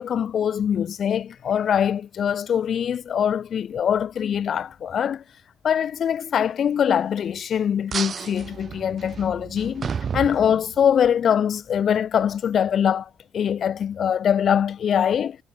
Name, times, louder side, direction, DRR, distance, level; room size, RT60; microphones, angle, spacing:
voice 1, 0.0-5.2 5.6-15.4, left 8 dB, 60° left, 0.9 m, -23 dB
sound 1, 7.9-11.1, right 6 dB, 50° right, 0.4 m, -32 dB
cardioid pair, 90°, 0 cm